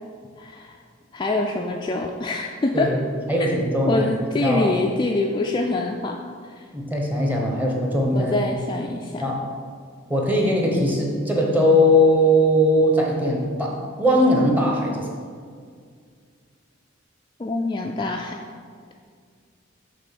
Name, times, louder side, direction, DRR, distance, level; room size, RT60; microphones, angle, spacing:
voice 1, 0.4-0.8 1.1-2.9 3.4-3.5 3.8-6.2 6.6-6.7 8.1-9.3 17.4-18.4, left 2 dB, 25° left, 1 dB, 0.3 m, -25 dB
voice 2, 3.3-4.1 4.3-4.7 6.7-8.4 9.2-9.4 10.1-15.1, equal, 10° right, -1 dB, 1.0 m, -20 dB
6.2 x 3.8 x 6.1 m, 2.1 s
head